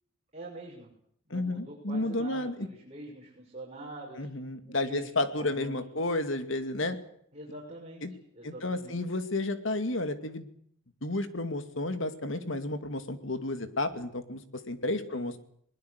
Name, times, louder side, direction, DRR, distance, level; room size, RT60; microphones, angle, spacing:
voice 1, 0.3-0.9 1.2-4.3 4.7-6.0 7.3-8.0 8.3-9.0 15.1-15.3, right 1 dB, 30° right, -2 dB, 6.4 m, -44 dB
voice 2, 1.3-2.7 4.2-7.0 8.0-8.1 8.4-10.5 11.0-15.4, left 2 dB, 65° left, 9 dB, 2.4 m, -32 dB
22.0 x 21.0 x 8.2 m, 0.67 s
head